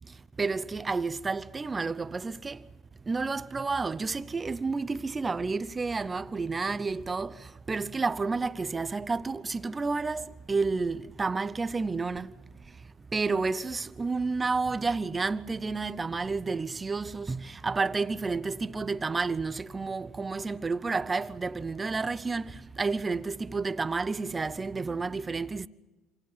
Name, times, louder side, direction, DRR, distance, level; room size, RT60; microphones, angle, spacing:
voice 1, 0.1-2.7 3.0-25.7, right 4 dB, 15° right, 0.7 m, -31 dB
28.0 x 27.5 x 5.6 m
cardioid pair, 145°, 0 cm